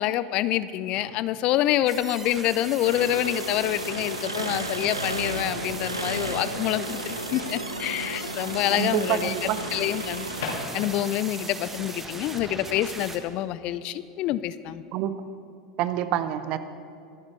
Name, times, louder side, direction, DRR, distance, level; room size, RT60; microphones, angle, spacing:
voice 1, 0.0-10.3 10.7-14.8, left 13 dB, 45° left, 16 dB, 0.4 m, -27 dB
Microwave oven, 0.9-1.6 3.5-3.8 9.6-11.2, left 4 dB, 60° left, 2.2 m, -38 dB
sound 1, 1.9-13.2, right 2 dB, 15° right, 1.3 m, -39 dB
Engine, 2.8-11.0, right 1 dB, 90° right, 0.7 m, -34 dB
voice 2, 8.7-9.6 14.9-15.1 15.8-16.6, right 11 dB, 45° right, 12 dB, 0.8 m, -27 dB
23.5 x 11.5 x 3.2 m, 2.4 s
figure-of-eight pair, 80°, 2 cm